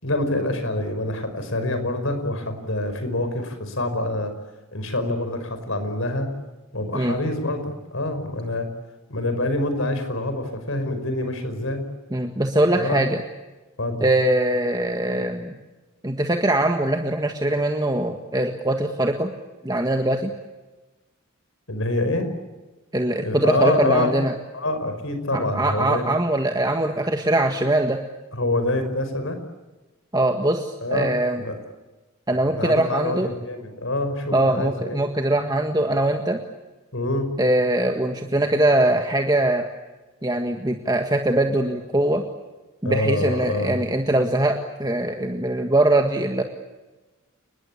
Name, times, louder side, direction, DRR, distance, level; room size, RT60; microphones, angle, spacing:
voice 1, 0.0-4.3 4.7-6.3 6.7-8.7 9.1-11.8 12.8-13.0 13.8-14.1 21.7-22.3 23.2-24.1 24.5-26.0 28.3-29.4 30.8-31.5 32.5-35.0 36.9-37.3 42.8-43.8, left 1 dB, 65° left, 8 dB, 5.2 m, -26 dB
voice 2, 12.1-13.2 14.0-15.5 16.0-19.3 19.6-20.3 22.9-24.3 25.3-28.0 30.1-31.4 32.3-33.3 34.3-36.4 37.4-39.6 40.2-42.2 42.8-46.4, right 1 dB, 20° right, 4 dB, 1.7 m, -22 dB
29.5 x 21.5 x 8.6 m, 1.2 s
head